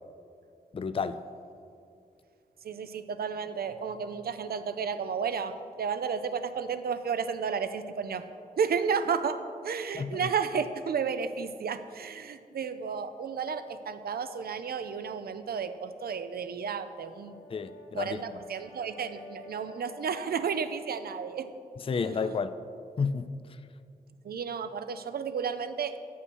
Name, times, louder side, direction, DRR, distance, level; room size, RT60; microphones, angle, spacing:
voice 1, 0.7-1.2 10.0-10.2 17.5-18.4 21.9-22.6 23.0-23.4, left 5 dB, 35° left, 11 dB, 0.4 m, -31 dB
voice 2, 2.6-8.2 8.6-17.4 17.9-21.5 21.9-22.4 24.2-26.0, right 6 dB, 80° right, 10 dB, 0.5 m, -32 dB
Brass instrument, 16.9-21.1, left 2 dB, 60° left, 1.3 m, -51 dB
8.4 x 5.6 x 6.1 m, 2.4 s
cardioid pair, 55°, 16 cm